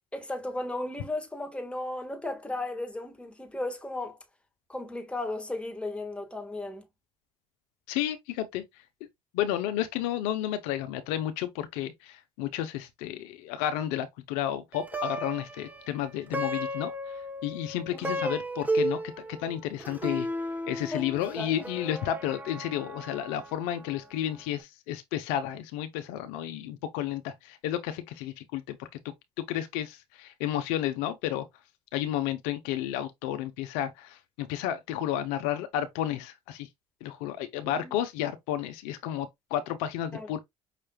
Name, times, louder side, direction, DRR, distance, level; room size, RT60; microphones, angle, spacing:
voice 1, 0.1-4.2 4.7-6.9 17.9-18.1 20.9-21.1 21.3-21.6 37.6-37.9 40.1-40.3, left 2 dB, 10° left, 1.6 m, -35 dB
voice 2, 7.9-8.6 9.3-16.9 17.4-19.0 19.3-20.3 20.7-28.9 29.4-31.5 31.9-36.7 37.0-40.4, left 11 dB, 85° left, 0.6 m, -32 dB
Plucked string instrument, 14.7-24.1, right 1 dB, 15° right, 1.0 m, -34 dB
5.7 x 3.2 x 2.2 m
supercardioid pair, 65°, 13 cm